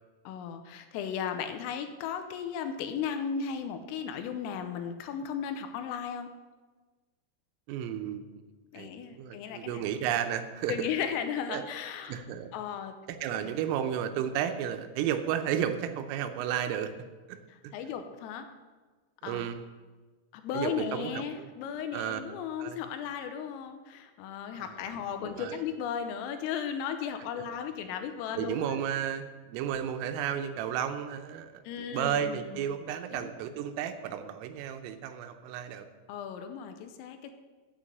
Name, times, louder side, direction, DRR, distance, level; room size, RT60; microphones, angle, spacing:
voice 1, 0.3-6.3 8.7-9.9 10.7-12.2 12.5-13.0 13.3-13.5 17.7-18.5 19.2-19.5 20.3-28.8 31.7-32.7 33.1-33.3 36.1-37.3, left 7 dB, 80° left, 8 dB, 3.4 m, -35 dB
voice 2, 7.7-8.4 8.8-10.9 11.5-11.6 12.1-12.5 13.1-16.9 17.3-17.4 19.2-19.6 20.5-21.5 21.9-22.2 22.6-22.8 24.5-25.6 28.4-35.9, right 9 dB, 80° right, 7 dB, 3.3 m, -33 dB
9.1 x 8.7 x 7.5 m, 1.3 s
omnidirectional pair, 6.0 m